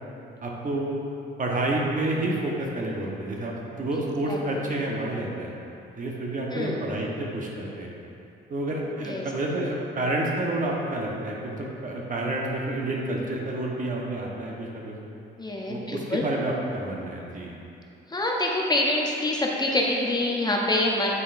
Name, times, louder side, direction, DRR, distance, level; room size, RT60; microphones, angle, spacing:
voice 1, 0.4-1.0 1.4-5.5 6.0-7.9 8.5-14.9 15.7-17.6, right 1 dB, 40° right, -2 dB, 1.1 m, -29 dB
voice 2, 6.5-6.8 9.0-9.3 15.4-16.2 18.1-21.1, left 1 dB, 20° left, -1 dB, 0.6 m, -26 dB
8.2 x 5.3 x 2.6 m, 2.7 s
cardioid pair, 90°, 20 cm